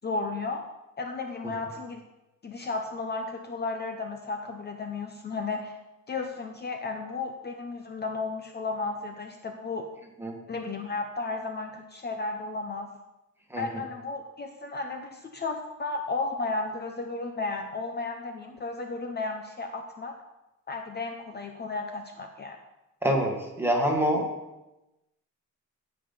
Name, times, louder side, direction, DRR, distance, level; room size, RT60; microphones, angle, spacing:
voice 1, 0.0-0.7 1.0-2.0 2.4-5.8 6.1-9.9 10.5-12.9 13.6-20.1 20.7-22.6, left 3 dB, 30° left, 4 dB, 0.8 m, -34 dB
voice 2, 23.0-24.2, equal, 5° right, 0 dB, 1.6 m, -25 dB
16.5 x 5.5 x 5.5 m, 0.98 s
wide cardioid pair, 175°, 31 cm